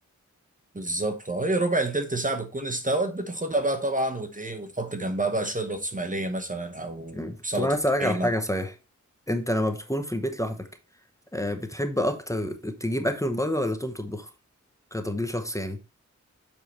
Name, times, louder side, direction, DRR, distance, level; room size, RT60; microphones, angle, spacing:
voice 1, 0.7-7.7 8.0-8.3, right 2 dB, 25° right, 1.0 m, -28 dB
voice 2, 7.1-8.7 9.3-10.7 11.3-14.3 14.9-15.8, equal, 10° left, 1.0 m, -28 dB
7.2 x 4.9 x 4.3 m
wide cardioid pair, 95°, 31 cm